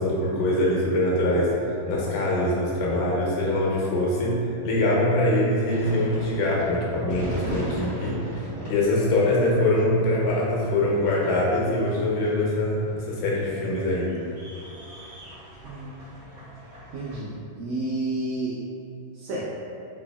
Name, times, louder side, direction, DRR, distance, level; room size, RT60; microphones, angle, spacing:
voice 1, 0.0-14.1, left 1 dB, 85° left, -4 dB, 2.4 m, -23 dB
sound 1, 5.6-17.2, right 1 dB, 70° right, 0.8 m, -38 dB
voice 2, 16.9-18.6 19.1-19.4, right 2 dB, 85° right, -6 dB, 1.6 m, -30 dB
5.1 x 2.6 x 2.2 m, 2.6 s
omnidirectional pair, 3.8 m